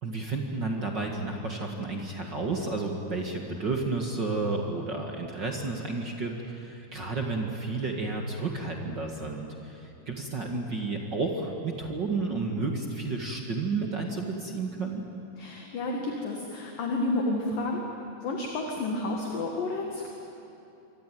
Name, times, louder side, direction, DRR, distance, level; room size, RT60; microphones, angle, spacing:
voice 1, 0.0-15.0, right 3 dB, 45° right, 1 dB, 1.5 m, -31 dB
voice 2, 15.4-17.8 18.2-20.1, left 2 dB, 60° left, 1 dB, 3.4 m, -30 dB
25.5 x 25.0 x 9.3 m, 2.8 s
omnidirectional pair, 4.9 m